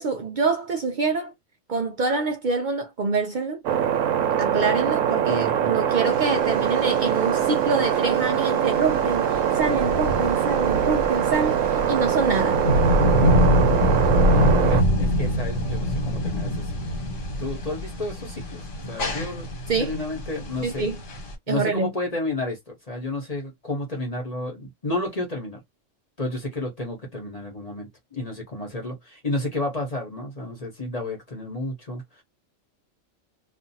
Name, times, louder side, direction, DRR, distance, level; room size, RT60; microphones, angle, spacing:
voice 1, 0.0-1.3 1.7-3.6 4.4-12.6 19.7-19.9 20.6-21.0 21.5-21.9, right 4 dB, 65° right, 0.4 m, -26 dB
sound 1, 3.7-14.8, right 9 dB, 90° right, 1.0 m, -23 dB
sound 2, 6.1-21.4, equal, 70° left, 1.4 m, -25 dB
voice 2, 14.7-16.7 17.4-18.6 18.9-19.5 19.8-20.9 21.5-25.6 26.2-32.0, left 2 dB, 35° left, 1.0 m, -31 dB
2.5 x 2.5 x 2.6 m
omnidirectional pair, 1.3 m